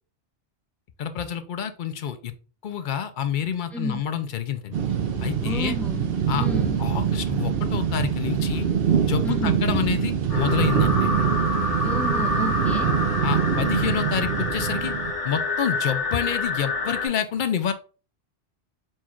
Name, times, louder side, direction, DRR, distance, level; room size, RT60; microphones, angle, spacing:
voice 1, 1.0-2.3 2.6-4.8 5.2-5.8 6.3-6.5 6.8-8.7 9.0-11.2 13.2-14.9 15.2-17.7, left 8 dB, 60° left, 0.5 m, -28 dB
voice 2, 3.7-4.0 5.4-6.8 9.2-9.7 11.8-13.0, equal, ahead, 0.5 m, -32 dB
sound 1, 4.7-15.1, right 8 dB, 60° right, 0.8 m, -24 dB
sound 2, 10.3-17.1, left 2 dB, 90° left, 1.5 m, -27 dB
4.5 x 2.3 x 4.4 m
omnidirectional pair, 1.2 m